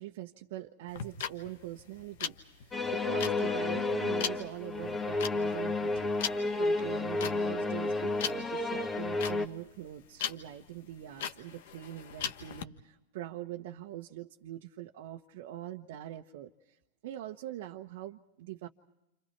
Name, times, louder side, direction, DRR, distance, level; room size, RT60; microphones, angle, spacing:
voice 1, 0.0-6.1 6.6-16.5 17.0-18.7, right 13 dB, 60° right, 1 dB, 1.2 m, -43 dB
sound 1, 0.9-12.6, left 8 dB, 65° left, 1.4 m, -39 dB
sound 2, 2.7-9.5, left 2 dB, 15° left, 1.8 m, -31 dB
29.5 x 28.5 x 4.6 m, 0.91 s
hypercardioid pair, 105°, 0 cm